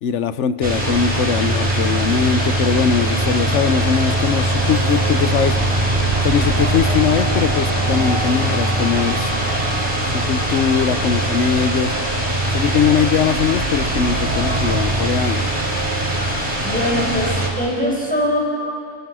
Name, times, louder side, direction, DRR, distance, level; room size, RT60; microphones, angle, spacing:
voice 1, 0.0-5.6 6.2-9.3 10.1-12.0 12.5-15.5, left 7 dB, 65° left, 13 dB, 1.0 m, -20 dB
sound 1, 0.6-17.5, right 1 dB, 30° right, 4.0 m, -21 dB
sound 2, 2.6-14.9, right 2 dB, 80° right, 4.5 m, -29 dB
voice 2, 16.6-18.4, equal, 5° left, -3 dB, 6.2 m, -22 dB
27.5 x 24.5 x 6.2 m, 2.5 s
omnidirectional pair, 1.4 m